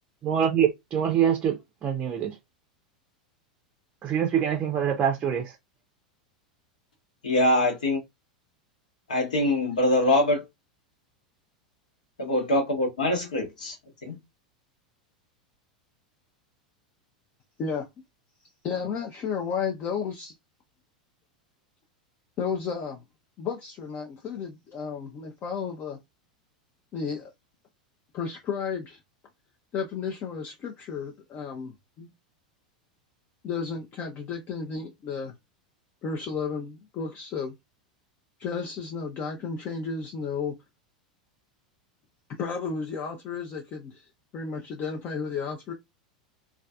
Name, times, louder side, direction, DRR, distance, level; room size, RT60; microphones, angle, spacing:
voice 1, 0.2-2.4 4.0-5.6, right 8 dB, 30° right, 0.5 m, -25 dB
voice 2, 7.2-8.0 9.1-10.4 12.2-13.7 14.0-14.1, left 1 dB, 75° left, 1.1 m, -23 dB
voice 3, 18.6-20.3 22.4-23.0 23.4-26.0 26.9-27.3 28.1-29.0 29.7-32.1 33.4-35.4 36.0-37.5 38.4-40.5 42.4-44.1 44.3-45.7, left 6 dB, 40° left, 0.5 m, -33 dB
2.4 x 2.3 x 2.3 m
figure-of-eight pair, 90°, 4 cm